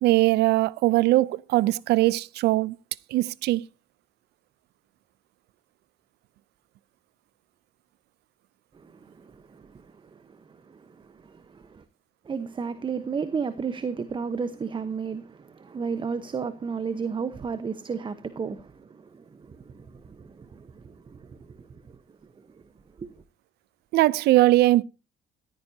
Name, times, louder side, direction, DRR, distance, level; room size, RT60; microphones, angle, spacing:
voice 1, 0.0-2.8 3.1-3.7 23.9-24.8, right 17 dB, 75° right, 0.6 m, -21 dB
voice 2, 8.7-11.8 12.2-22.0 23.0-23.1, right 5 dB, 30° right, 1.1 m, -34 dB
15.0 x 14.0 x 2.8 m
cardioid pair, 110°, 17 cm